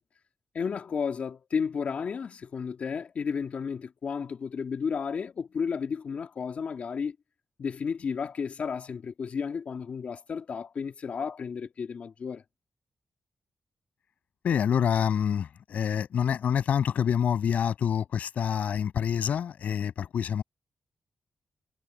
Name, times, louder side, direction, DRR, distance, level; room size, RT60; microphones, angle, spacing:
voice 1, 0.5-7.2 7.6-12.4, left 6 dB, 60° left, 2.5 m, -32 dB
voice 2, 14.4-20.4, left 8 dB, 80° left, 7.8 m, -27 dB
cardioid pair, 90°, 3 cm